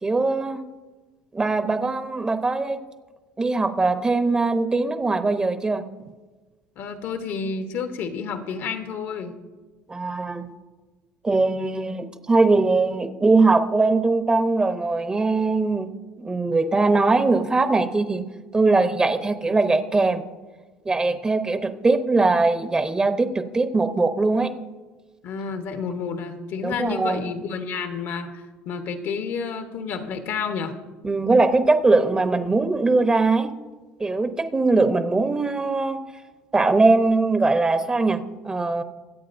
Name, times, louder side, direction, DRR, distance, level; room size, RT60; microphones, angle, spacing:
voice 1, 0.0-0.6 1.3-2.8 3.4-5.8 9.9-10.5 11.2-15.9 16.2-18.2 18.5-20.2 20.8-24.5 26.6-27.3 31.0-33.5 34.0-36.0 36.5-38.8, right 3 dB, 20° right, 9 dB, 0.8 m, -21 dB
voice 2, 6.8-9.3 25.2-30.8, left 5 dB, 65° left, 7 dB, 1.1 m, -30 dB
23.0 x 8.4 x 2.6 m, 1.3 s
cardioid pair, 110°, 4 cm